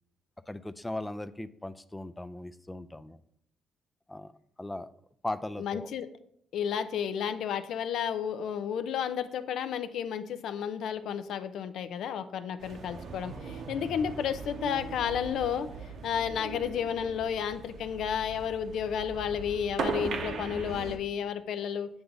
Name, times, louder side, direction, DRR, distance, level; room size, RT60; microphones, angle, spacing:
voice 1, 0.5-3.2 4.1-4.3 4.6-4.9 5.2-5.9, left 1 dB, 10° left, 14 dB, 0.3 m, -38 dB
voice 2, 5.6-6.1 6.5-15.7 16.0-21.9, left 8 dB, 75° left, 11 dB, 0.5 m, -32 dB
sound 1, 12.6-21.0, right 4 dB, 65° right, 0.8 m, -39 dB
7.8 x 2.7 x 5.7 m, 0.70 s
cardioid pair, 90°, 0 cm